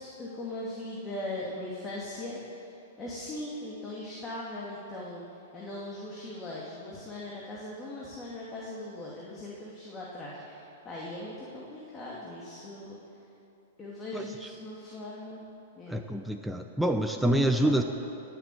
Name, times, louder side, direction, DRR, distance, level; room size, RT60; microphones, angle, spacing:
voice 1, 0.0-2.7 3.0-5.2 5.5-13.0 13.8-15.4 15.8-16.0 17.6-17.8, left 1 dB, 20° left, -6 dB, 2.6 m, -39 dB
voice 2, 15.9-17.8, right 1 dB, ahead, 4 dB, 0.7 m, -26 dB
19.0 x 7.4 x 7.8 m, 2.7 s
hypercardioid pair, 115°, 0 cm